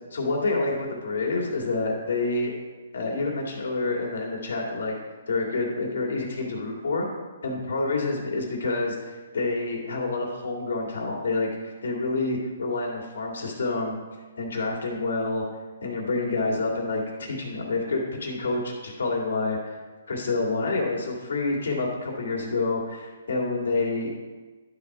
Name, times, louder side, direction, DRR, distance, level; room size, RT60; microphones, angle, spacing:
voice 1, 0.1-2.5 2.9-4.9 5.3-7.1 7.4-14.0 14.4-15.4 15.8-19.8 20.1-24.1, left 3 dB, 75° left, -1 dB, 2.1 m, -28 dB
11.5 x 4.2 x 4.8 m, 1.3 s
hypercardioid pair, 170°, 0 cm